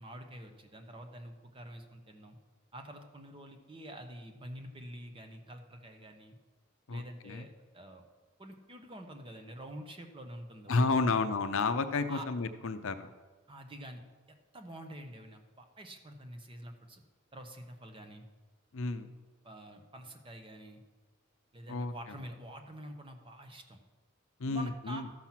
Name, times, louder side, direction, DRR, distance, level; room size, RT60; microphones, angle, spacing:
voice 1, 0.0-2.4 2.7-6.4 6.9-8.0 8.4-11.3 12.1-12.3 13.5-14.0 14.3-17.0 17.3-18.2 19.4-20.8 21.5-23.8 24.4-25.0, right 1 dB, 25° right, 5 dB, 0.9 m, -47 dB
voice 2, 6.9-7.5 10.7-13.1 18.7-19.1 21.7-22.2 24.4-25.0, left 3 dB, 65° left, 10 dB, 0.6 m, -31 dB
13.5 x 6.0 x 5.8 m, 1.3 s
head